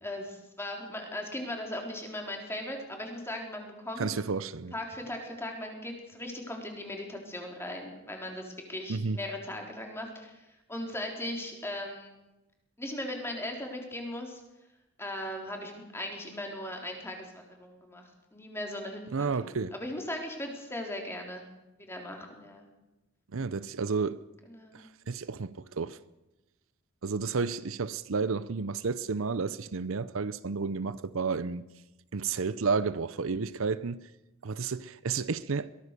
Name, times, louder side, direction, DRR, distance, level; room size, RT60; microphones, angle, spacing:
voice 1, 0.0-4.1 4.7-12.2 12.8-14.4 15.0-18.0 18.3-21.4 21.8-22.7 24.5-24.8, left 1 dB, 10° left, 3.8 m, -38 dB
voice 2, 4.0-4.7 8.9-9.2 19.1-19.7 23.3-24.2 24.7-26.0 27.0-31.6 32.1-34.1 34.4-35.7, right 4 dB, 75° right, 0.7 m, -31 dB
22.5 x 17.0 x 6.8 m
head